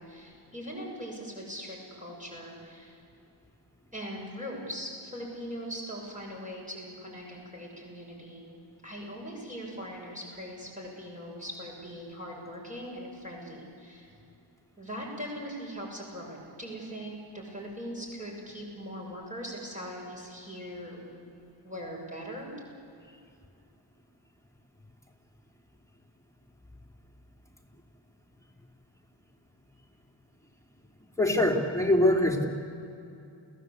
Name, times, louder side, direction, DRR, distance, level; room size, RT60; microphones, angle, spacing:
voice 1, 0.0-3.0 3.9-8.4 8.8-14.1 14.8-21.4 21.6-22.5, equal, 15° right, -3 dB, 6.6 m, -40 dB
voice 2, 31.2-32.5, left 1 dB, 5° left, 1 dB, 3.4 m, -23 dB
29.0 x 17.0 x 8.4 m, 2.6 s
wide cardioid pair, 45°, 46 cm